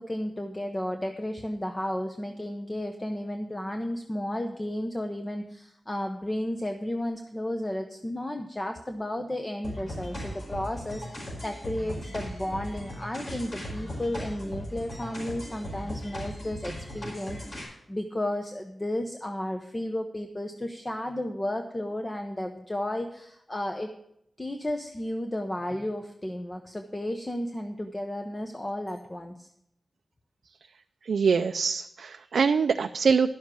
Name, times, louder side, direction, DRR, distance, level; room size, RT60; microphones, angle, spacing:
voice 1, 0.0-23.9 24.4-29.5, left 1 dB, 20° left, 5 dB, 0.8 m, -33 dB
sound 1, 9.6-17.6, equal, 50° left, 5.0 m, -38 dB
voice 2, 31.0-33.3, right 5 dB, 85° right, 8 dB, 0.4 m, -24 dB
11.0 x 7.3 x 6.2 m, 0.76 s
wide cardioid pair, 105°, 0 cm